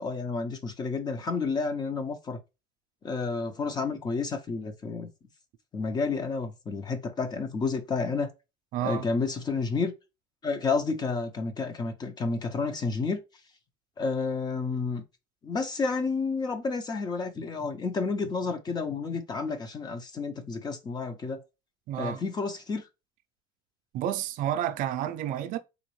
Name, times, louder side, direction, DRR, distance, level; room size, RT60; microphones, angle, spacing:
voice 1, 0.0-2.4 3.0-5.1 5.7-8.3 8.8-9.9 10.4-13.2 14.0-15.0 15.4-21.4 22.0-22.9, left 4 dB, 25° left, 0.7 m, -30 dB
voice 2, 8.7-9.1 21.9-22.2 23.9-25.6, right 11 dB, 60° right, 0.5 m, -30 dB
3.9 x 3.0 x 3.1 m
cardioid pair, 135°, 16 cm